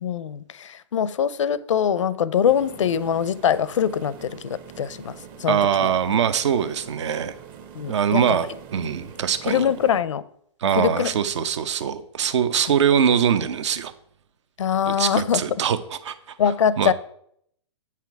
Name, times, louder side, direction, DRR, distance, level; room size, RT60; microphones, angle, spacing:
voice 1, 0.0-5.9 7.7-8.4 9.5-10.2 10.8-11.1 14.6-15.4 16.4-16.9, left 8 dB, 85° left, 0.5 m, -23 dB
sound 1, 2.5-10.0, right 7 dB, 30° right, 0.8 m, -44 dB
voice 2, 5.5-7.4 7.9-9.6 10.6-13.9 14.9-16.4 16.8-16.9, right 8 dB, 70° right, 0.8 m, -23 dB
8.5 x 5.9 x 4.6 m
hypercardioid pair, 135°, 16 cm